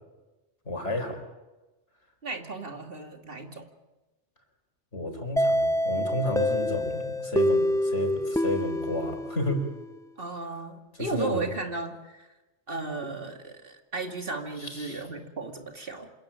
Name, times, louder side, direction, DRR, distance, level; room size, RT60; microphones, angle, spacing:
voice 1, 0.7-1.2 4.9-9.6 10.9-11.5 14.6-15.0, left 1 dB, 80° left, 4 dB, 4.8 m, -31 dB
voice 2, 2.2-3.7 10.2-12.3 12.7-16.1, right 3 dB, 55° right, 3 dB, 2.5 m, -35 dB
sound 1, 5.4-10.0, left 1 dB, 5° left, 0.4 m, -27 dB
27.0 x 14.5 x 8.9 m, 1.1 s
omnidirectional pair, 1.2 m